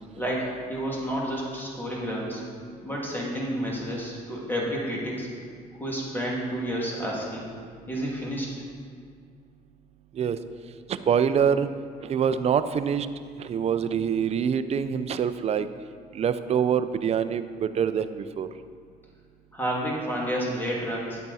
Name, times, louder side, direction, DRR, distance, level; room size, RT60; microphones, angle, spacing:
voice 1, 0.2-2.4 2.8-5.3 5.7-7.5 7.9-8.5 19.5-21.2, equal, 10° left, -4 dB, 2.5 m, -30 dB
voice 2, 10.9-11.7 12.1-13.1 13.4-15.7 16.1-18.5, right 7 dB, 40° right, 11 dB, 0.5 m, -25 dB
9.1 x 8.6 x 4.2 m, 2.1 s
cardioid pair, 110°, 17 cm